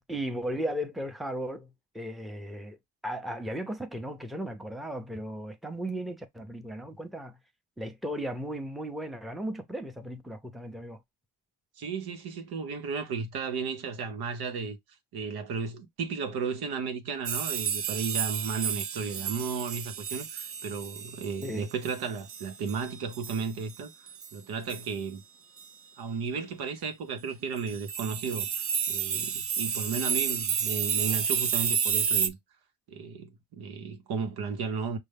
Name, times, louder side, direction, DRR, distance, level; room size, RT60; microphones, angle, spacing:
voice 1, 0.1-2.8 3.0-7.4 7.8-11.0 21.4-21.6, equal, ahead, 0.7 m, -36 dB
voice 2, 11.8-14.8 15.1-23.9 24.3-25.2 26.0-32.4 32.9-35.0, right 5 dB, 85° right, 0.9 m, -34 dB
sound 1, 17.3-23.4 23.7-23.8 24.1-24.3 24.7-24.9 25.6-25.7 27.6-32.3, right 7 dB, 40° right, 0.5 m, -31 dB
5.4 x 2.2 x 3.4 m
cardioid pair, 85°, 37 cm